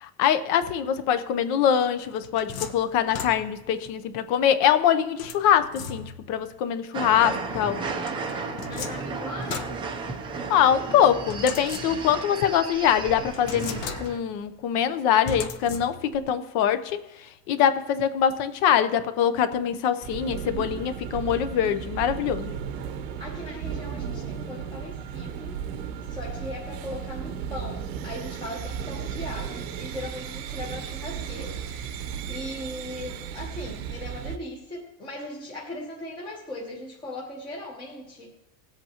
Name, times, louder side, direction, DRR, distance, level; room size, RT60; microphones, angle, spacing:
voice 1, 0.0-7.8 10.5-17.0 17.5-22.5, left 9 dB, 40° left, 12 dB, 0.7 m, -23 dB
sound 1, 1.8-3.8 5.2-6.4 8.0-10.5 11.3-12.3 12.7-12.8 13.3-14.4 15.2-16.3, left 6 dB, 90° left, 1.2 m, -37 dB
sound 2, 6.9-14.2, right 4 dB, 15° right, 0.5 m, -34 dB
voice 2, 7.9-8.2 8.7-9.8 23.2-25.6 26.0-31.7 32.3-38.3, left 1 dB, 10° left, -3 dB, 0.9 m, -38 dB
sound 3, 20.0-34.4, right 8 dB, 50° right, 0.9 m, -35 dB
19.0 x 8.1 x 2.9 m, 0.99 s
cardioid pair, 175°, 39 cm